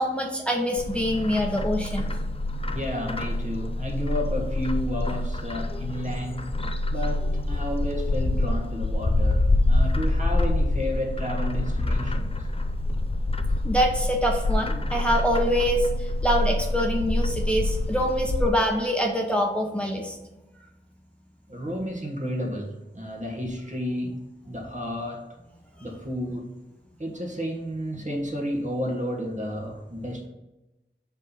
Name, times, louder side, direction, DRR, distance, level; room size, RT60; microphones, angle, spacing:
voice 1, 0.0-2.1 13.6-20.2, equal, 5° left, 0 dB, 0.9 m, -25 dB
Bird, 0.8-18.5, left 2 dB, 30° left, 0.5 m, -26 dB
voice 2, 2.7-6.6 6.9-12.3 18.0-18.1 21.5-25.3 25.8-26.6 27.0-30.3, equal, 40° right, 0 dB, 1.4 m, -32 dB
5.3 x 3.9 x 5.6 m, 1.0 s
wide cardioid pair, 60°, 19 cm